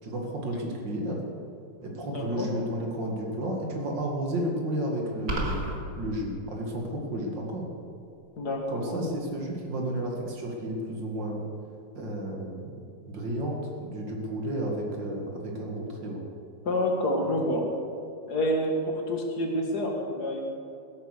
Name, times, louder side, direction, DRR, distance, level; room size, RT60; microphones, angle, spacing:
voice 1, 0.0-1.2 1.8-5.6 6.0-7.7 8.7-11.4 11.9-16.2 17.2-17.3, right 1 dB, 65° right, 0 dB, 2.6 m, -32 dB
voice 2, 2.0-2.5 8.4-9.0 16.7-17.7 18.3-20.4, left 1 dB, 55° left, 1 dB, 2.1 m, -28 dB
sound 1, 5.3-5.8, right 1 dB, 45° right, 2.2 m, -29 dB
16.0 x 8.8 x 6.6 m, 2.5 s
omnidirectional pair, 2.1 m